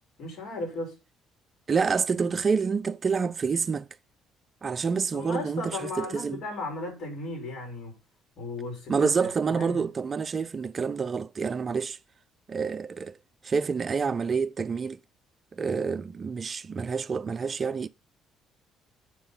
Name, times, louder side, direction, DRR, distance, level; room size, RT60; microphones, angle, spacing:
voice 1, 0.2-1.0 5.1-8.0 8.4-9.8, left 2 dB, 60° left, 5.2 m, -36 dB
voice 2, 1.7-3.9 4.6-6.4 8.9-12.0 12.5-13.2 13.4-15.0 15.5-17.9, right 5 dB, 35° right, 0.4 m, -28 dB
7.7 x 6.1 x 5.5 m
cardioid pair, 105°, 0 cm